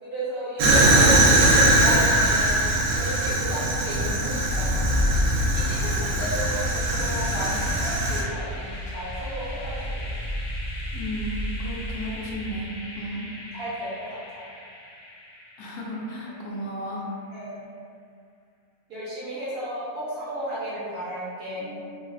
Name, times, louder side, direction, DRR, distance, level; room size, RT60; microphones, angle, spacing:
voice 1, 0.0-2.6 2.9-5.1 5.5-8.2 8.5-10.1 13.5-13.9 14.3-14.4 17.3-17.7 18.9-21.7, right 1 dB, 60° right, -9 dB, 0.7 m, -33 dB
Fire, 0.6-8.2, right 1 dB, 75° right, 1.0 m, -21 dB
sound 1, 4.3-16.2, left 1 dB, 65° left, 0.7 m, -31 dB
voice 2, 10.9-13.3 15.6-17.1 21.5-22.0, equal, 85° left, -4 dB, 1.1 m, -34 dB
3.0 x 2.3 x 2.5 m, 2.3 s
omnidirectional pair, 1.5 m